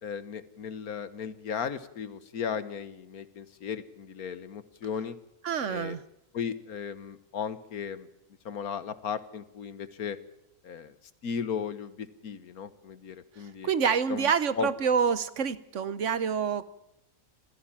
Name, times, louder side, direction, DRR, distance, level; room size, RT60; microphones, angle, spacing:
voice 1, 0.0-5.2 5.7-6.0 6.3-8.1 8.4-10.2 10.6-10.9 11.2-13.7 14.1-14.3 14.6-14.7, left 7 dB, 90° left, 13 dB, 1.7 m, -36 dB
voice 2, 5.4-6.0 13.4-16.7, right 6 dB, 60° right, 15 dB, 1.2 m, -27 dB
26.0 x 16.0 x 7.4 m, 0.81 s
omnidirectional pair, 1.5 m